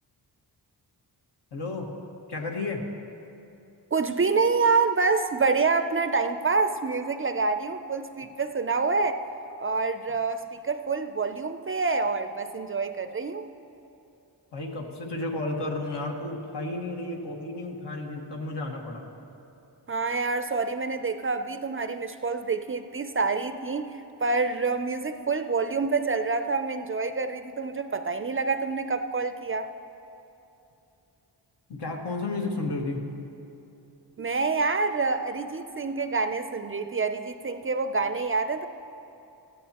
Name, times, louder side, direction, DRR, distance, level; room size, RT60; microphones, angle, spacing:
voice 1, 1.5-1.9 2.3-2.8 14.5-19.1 31.7-33.1, left 2 dB, 75° left, 0 dB, 1.7 m, -32 dB
voice 2, 3.9-9.2 9.6-13.5 19.9-29.7 34.2-38.7, right 4 dB, 30° right, 9 dB, 0.4 m, -27 dB
17.0 x 14.5 x 2.9 m, 2.9 s
wide cardioid pair, 110°, 42 cm